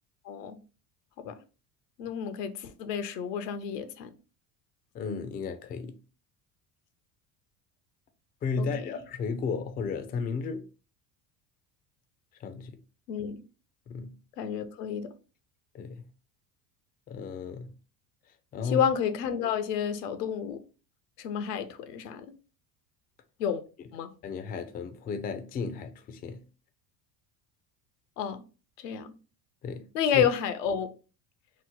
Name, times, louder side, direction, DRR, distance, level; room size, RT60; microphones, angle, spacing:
voice 1, 0.2-0.6 1.2-1.4 2.0-4.1 8.6-8.9 13.1-13.4 14.4-15.1 18.6-20.6 21.2-22.3 23.4-23.6 23.9-24.1 28.2-28.4 28.8-29.1 29.9-30.9, left 8 dB, 85° left, 0.6 m, -30 dB
voice 2, 4.9-6.0 8.4-10.7 12.4-12.8 13.9-14.2 15.7-16.1 17.1-17.8 18.5-18.9 24.2-26.4 29.6-29.9 30.1-30.2, left 5 dB, 20° left, 0.3 m, -34 dB
2.9 x 2.0 x 3.7 m
hypercardioid pair, 80°, 47 cm